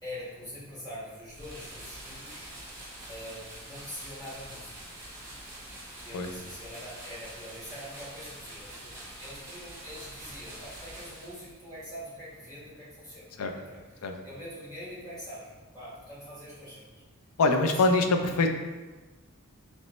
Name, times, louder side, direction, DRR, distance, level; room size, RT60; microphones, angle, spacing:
voice 1, 0.0-2.5 3.1-4.8 6.0-16.9 17.5-17.7, equal, 20° left, -9 dB, 1.5 m, -44 dB
sound 1, 1.3-11.7, right 1 dB, 10° right, 0.9 m, -45 dB
voice 2, 17.4-18.5, left 3 dB, 80° left, 5 dB, 0.4 m, -23 dB
3.9 x 3.2 x 3.1 m, 1.2 s
head